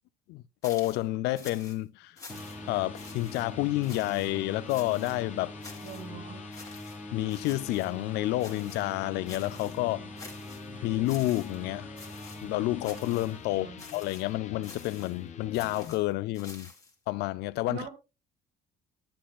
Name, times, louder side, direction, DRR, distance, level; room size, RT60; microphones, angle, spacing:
voice 1, 0.3-2.1 2.7-5.5 7.1-10.1 10.7-11.9 12.4-13.7 13.9-16.7 17.1-17.9, left 17 dB, 85° left, 0.4 m, -30 dB
sound 1, 0.6-1.1 1.4-1.8 2.2-2.7 2.9-3.4 3.8-4.3 4.7-5.2 5.6-6.1 6.5-7.0 7.3-7.9 8.4-8.9 9.3-9.8 10.2-10.7 11.0-11.6 12.0-12.5 12.8-13.3 13.8-14.3 14.6-15.2 15.5-16.9, left 3 dB, 20° left, 1.9 m, -49 dB
sound 2, 2.0-15.9, left 7 dB, 45° left, 1.0 m, -47 dB
sound 3, 2.3-14.0, equal, 10° right, 1.8 m, -44 dB
voice 2, 5.8-6.5 13.5-13.8 17.7-17.9, right 6 dB, 70° right, 2.3 m, -42 dB
10.5 x 7.6 x 2.3 m
cardioid pair, 110°, 17 cm